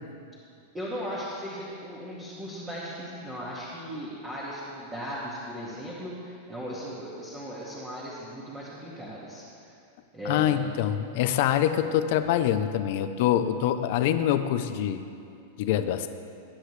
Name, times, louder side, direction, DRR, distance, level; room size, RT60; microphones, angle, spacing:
voice 1, 0.7-9.7 10.1-10.8 11.7-11.9, equal, 10° right, -8 dB, 2.0 m, -37 dB
voice 2, 10.2-15.0 15.6-16.1, left 10 dB, 50° left, 9 dB, 0.8 m, -25 dB
21.0 x 10.0 x 3.3 m, 2.5 s
supercardioid pair, 165°, 0 cm